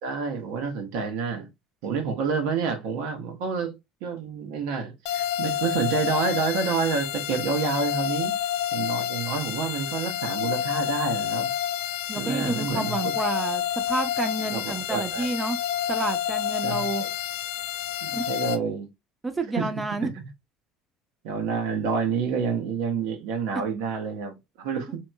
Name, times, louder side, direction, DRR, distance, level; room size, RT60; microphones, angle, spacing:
voice 1, 0.0-1.5 1.8-3.7 4.0-8.4 8.7-11.5 12.1-13.1 14.5-15.3 16.6-17.1 18.0-18.9 19.5-19.7 20.0-20.1 21.2-24.9, right 5 dB, 70° right, 0.8 m, -28 dB
sound 1, 5.1-18.6, left 10 dB, 65° left, 0.4 m, -29 dB
voice 2, 12.1-15.6 15.9-17.0 18.1-18.3 19.2-20.1 24.9-25.0, right 2 dB, 20° right, 0.7 m, -30 dB
2.9 x 2.8 x 2.2 m
hypercardioid pair, 65°, 0 cm